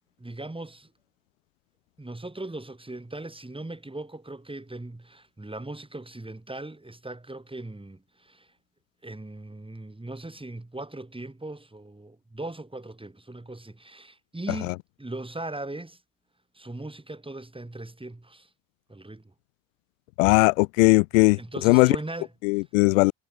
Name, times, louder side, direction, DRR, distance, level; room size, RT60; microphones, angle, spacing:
voice 1, 0.2-0.9 2.0-8.5 9.0-16.0 16.6-18.5 18.9-19.2 21.4-22.3, right 2 dB, 15° right, 7.3 m, -39 dB
voice 2, 20.2-22.0 22.4-23.1, left 27 dB, 85° left, 0.6 m, -19 dB
hypercardioid pair, 50°, 37 cm